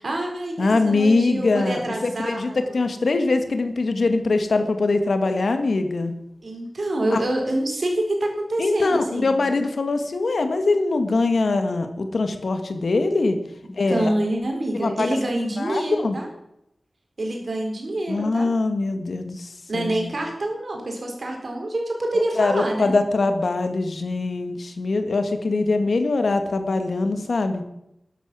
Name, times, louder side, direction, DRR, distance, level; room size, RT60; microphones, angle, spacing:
voice 1, 0.0-2.8 6.4-9.5 13.9-16.3 17.2-18.5 19.7-22.9, right 1 dB, 65° right, 1 dB, 4.2 m, -26 dB
voice 2, 0.6-6.1 7.1-7.2 8.6-13.4 13.8-14.1 14.7-15.1 15.6-16.2 18.1-20.0 22.4-27.6, left 3 dB, 80° left, 7 dB, 1.7 m, -22 dB
12.5 x 11.0 x 6.2 m, 0.81 s
wide cardioid pair, 70°, 0 cm